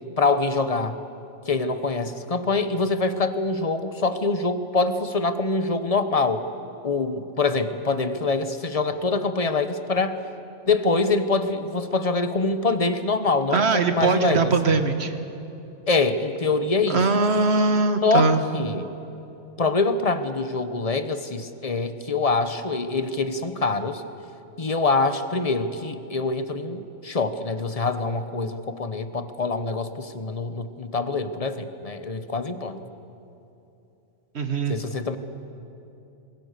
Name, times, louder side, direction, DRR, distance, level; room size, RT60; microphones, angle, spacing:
voice 1, 0.2-1.0 1.5-6.4 6.8-10.2 10.6-14.7 15.9-17.1 18.0-18.9 19.6-24.0 24.6-32.8 34.7-35.2, left 3 dB, 30° left, 10 dB, 1.1 m, -25 dB
voice 2, 13.5-15.1 16.9-18.4 34.3-34.8, right 3 dB, 65° right, 8 dB, 1.7 m, -21 dB
27.0 x 22.0 x 6.7 m, 2.9 s
omnidirectional pair, 1.2 m